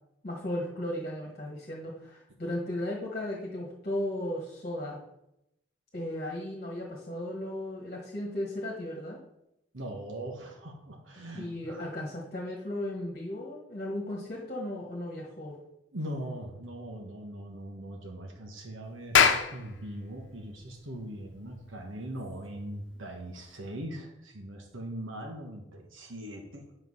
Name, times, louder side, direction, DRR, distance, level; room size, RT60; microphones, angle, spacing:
voice 1, 0.2-5.0 5.9-9.2 11.3-15.6, left 1 dB, 40° left, -2 dB, 1.4 m, -35 dB
voice 2, 9.7-11.9 15.9-26.8, right 1 dB, 85° right, 2 dB, 1.4 m, -40 dB
Clapping, 18.9-23.8, left 6 dB, 70° left, 0.8 m, -29 dB
8.5 x 5.7 x 5.5 m, 0.85 s
head